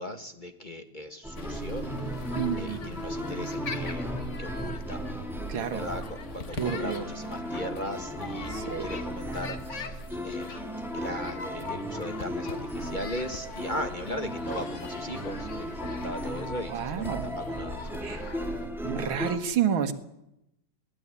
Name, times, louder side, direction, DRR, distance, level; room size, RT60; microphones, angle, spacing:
voice 1, 0.0-5.0 5.7-10.7 10.9-17.8 18.1-18.3, left 1 dB, 25° left, 6 dB, 1.6 m, -38 dB
sound 1, 1.2-19.4, equal, ahead, 2.6 m, -36 dB
sound 2, 1.4-18.7, left 4 dB, 40° left, 1.5 m, -42 dB
voice 2, 2.4-2.8 5.5-5.8 6.6-7.0 8.5-8.9 16.7-17.2 18.0-18.2 18.8-19.9, right 8 dB, 70° right, 7 dB, 2.3 m, -29 dB
20.0 x 18.5 x 9.8 m, 0.85 s
omnidirectional pair, 2.3 m